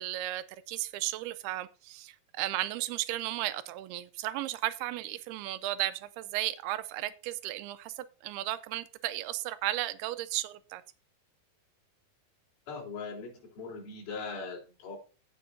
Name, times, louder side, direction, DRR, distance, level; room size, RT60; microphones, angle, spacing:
voice 1, 0.0-7.9 8.2-10.8, right 15 dB, 85° right, 2.7 m, -34 dB
voice 2, 12.7-15.0, left 4 dB, 65° left, 5.4 m, -40 dB
16.5 x 7.3 x 2.7 m
omnidirectional pair, 4.6 m